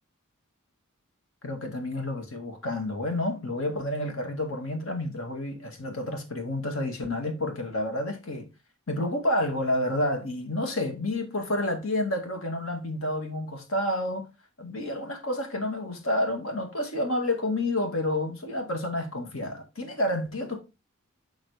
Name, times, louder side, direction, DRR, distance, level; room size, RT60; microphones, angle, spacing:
voice 1, 1.4-8.5 8.9-14.3 14.6-20.6, left 1 dB, 65° left, 2.1 m, -29 dB
7.1 x 6.4 x 3.4 m
head